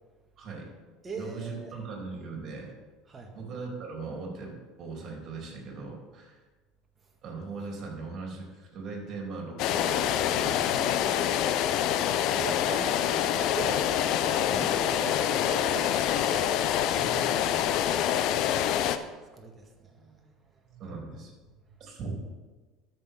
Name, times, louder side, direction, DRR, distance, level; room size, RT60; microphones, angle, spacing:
voice 1, 0.4-0.7 1.2-2.7 3.3-6.4 7.2-11.5 14.5-14.7 17.4-17.6 20.8-21.3 21.8-22.2, right 4 dB, 50° right, 0 dB, 3.3 m, -39 dB
voice 2, 1.0-1.8 3.1-3.3 11.9-13.9 14.2-17.5 18.0-21.0, right 3 dB, 30° right, 3 dB, 1.9 m, -41 dB
sound 1, 9.6-19.0, left 10 dB, 60° left, 0.5 m, -26 dB
13.0 x 6.0 x 3.8 m, 1.3 s
hypercardioid pair, 75°, 0 cm